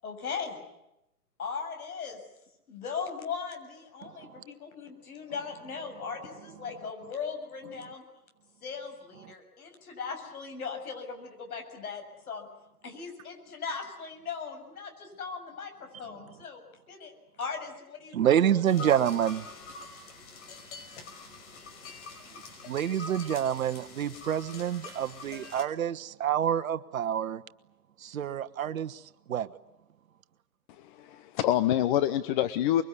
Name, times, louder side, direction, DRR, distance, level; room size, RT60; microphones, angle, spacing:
voice 1, 0.0-0.6 1.4-2.2 2.7-8.0 8.6-12.5 12.8-16.6 16.9-17.1 17.4-19.1, left 5 dB, 65° left, 7.7 m, -38 dB
voice 2, 4.0-4.4 9.2-9.3 16.2-16.3 18.1-19.5 22.6-27.4 28.0-29.0 29.3-29.5, right 10 dB, 60° right, 1.3 m, -28 dB
sound 1, 18.7-25.6, left 4 dB, 50° left, 5.6 m, -45 dB
voice 3, 30.8-32.8, left 12 dB, 30° left, 1.0 m, -26 dB
25.5 x 23.0 x 9.8 m
hypercardioid pair, 130°, 47 cm